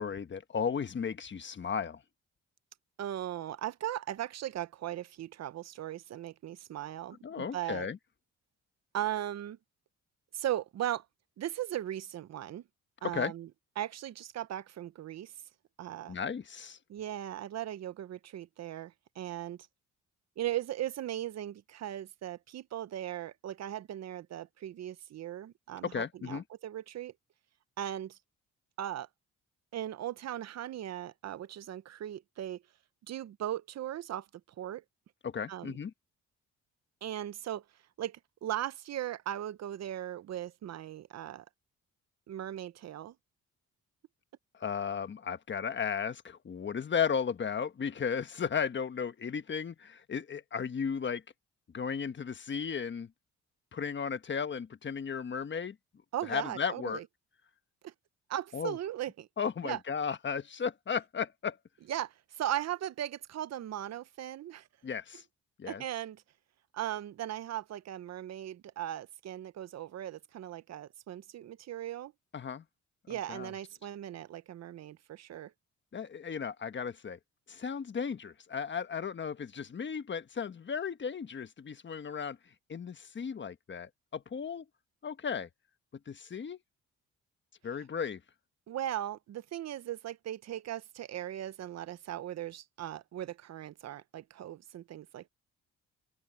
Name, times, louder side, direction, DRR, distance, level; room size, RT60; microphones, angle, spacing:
voice 1, 0.0-2.0 7.2-8.0 13.1-13.3 16.1-16.8 25.8-26.4 35.2-35.9 44.6-51.2 51.7-53.1 53.7-55.7 56.3-57.0 58.5-58.8 59.4-61.6 64.8-65.2 65.6-65.8 72.3-72.6 73.1-73.5 75.9-77.2 77.5-82.4 82.7-84.6 85.0-85.5 86.1-86.6 87.6-88.2, left 6 dB, 40° left, 1.3 m, -35 dB
voice 2, 3.0-7.9 8.9-9.6 10.3-11.0 11.4-12.6 13.0-13.5 13.8-15.3 15.8-16.2 16.9-19.6 20.4-27.1 27.8-28.2 28.8-29.1 29.7-32.6 33.1-34.3 34.6-34.8 35.5-35.8 37.0-37.6 38.0-41.4 42.3-43.1 56.1-57.0 57.8-57.9 58.3-59.3 59.6-59.8 61.9-64.7 65.7-66.2 66.7-72.1 73.1-75.5 88.7-95.3, right 12 dB, 60° right, 0.8 m, -38 dB
open air
cardioid pair, 90°, 30 cm